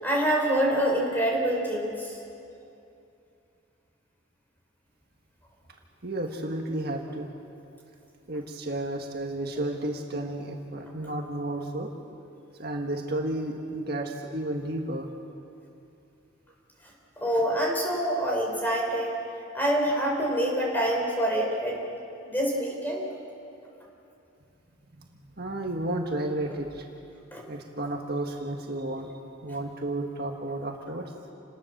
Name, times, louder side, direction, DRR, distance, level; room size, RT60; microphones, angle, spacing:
voice 1, 0.0-2.2 17.2-19.2 19.5-21.8 22.2-23.0 27.3-27.4, equal, 10° left, -1 dB, 4.6 m, -26 dB
voice 2, 6.0-7.3 8.3-11.9 12.6-15.1 25.0-25.1 25.4-26.8 27.5-29.1 29.4-31.0, right 1 dB, 50° right, 1 dB, 1.7 m, -32 dB
29.0 x 19.5 x 6.8 m, 2.7 s
head